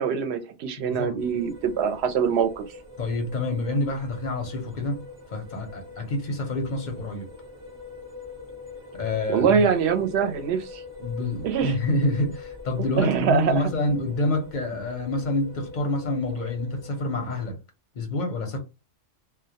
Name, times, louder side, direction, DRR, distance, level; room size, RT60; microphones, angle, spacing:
voice 1, 0.0-2.7 9.3-10.8 11.4-11.8 12.8-13.6, right 7 dB, 70° right, 0.8 m, -24 dB
voice 2, 0.8-1.1 3.0-5.0 5.3-7.3 8.9-9.7 11.0-17.6 18.0-18.6, left 2 dB, 50° left, 0.6 m, -27 dB
sound 1, 1.2-17.5, left 3 dB, 30° right, 0.5 m, -43 dB
2.2 x 2.1 x 2.7 m
omnidirectional pair, 1.2 m